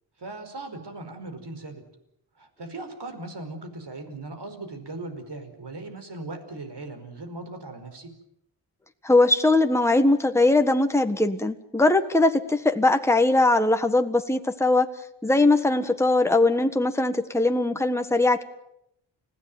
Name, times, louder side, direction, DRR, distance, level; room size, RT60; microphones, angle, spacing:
voice 1, 0.2-1.8 2.4-8.1, right 2 dB, 60° right, 7 dB, 5.1 m, -38 dB
voice 2, 9.0-14.9 15.2-18.4, left 2 dB, 5° left, 7 dB, 1.5 m, -20 dB
30.0 x 16.0 x 9.3 m, 0.80 s
wide cardioid pair, 105°, 47 cm